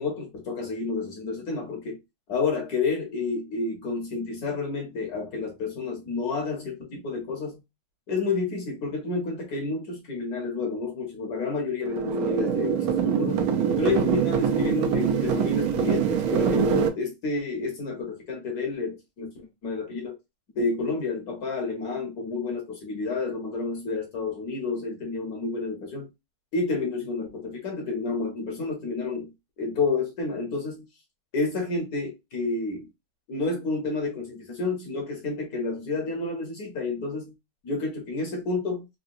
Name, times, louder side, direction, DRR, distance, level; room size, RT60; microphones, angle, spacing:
voice 1, 0.0-2.0 2.3-7.6 8.1-13.5 13.8-19.3 19.6-20.1 20.5-26.1 26.5-29.3 29.6-30.9 31.3-32.9 33.3-37.3 37.6-38.9, left 3 dB, 60° left, 1.1 m, -30 dB
sound 1, 11.9-16.9, right 6 dB, 85° right, 0.8 m, -24 dB
3.8 x 2.1 x 2.5 m
omnidirectional pair, 2.2 m